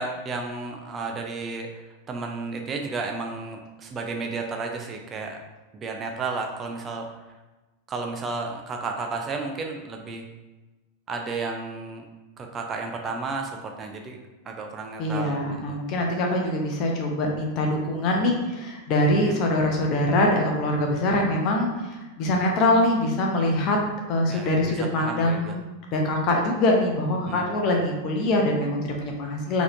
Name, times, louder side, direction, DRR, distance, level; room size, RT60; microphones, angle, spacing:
voice 1, 0.0-5.4 5.7-7.1 7.9-10.3 11.1-12.0 12.4-14.2 14.4-15.8 19.2-19.3 24.3-25.5 27.3-27.5, right 3 dB, 25° right, 2 dB, 0.4 m, -33 dB
voice 2, 15.0-23.8 24.1-29.6, left 1 dB, 40° left, 1 dB, 0.8 m, -24 dB
4.0 x 2.9 x 2.6 m, 1.1 s
figure-of-eight pair, 90°, 0 cm